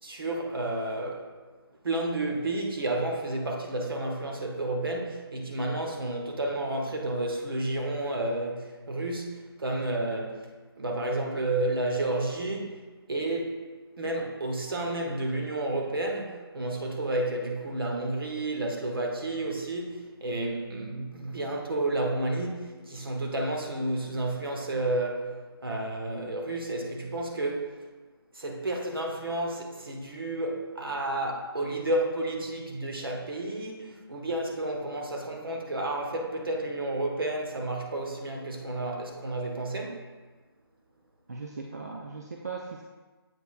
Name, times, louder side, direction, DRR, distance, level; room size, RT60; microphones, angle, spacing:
voice 1, 0.0-1.3 1.8-10.4 10.8-12.8 13.1-13.6 14.0-25.4 25.6-27.7 28.3-40.0, right 2 dB, 60° right, 1 dB, 1.1 m, -31 dB
voice 2, 41.3-42.8, right 4 dB, 40° right, 0 dB, 0.4 m, -38 dB
7.8 x 5.3 x 2.5 m, 1.3 s
hypercardioid pair, 175°, 13 cm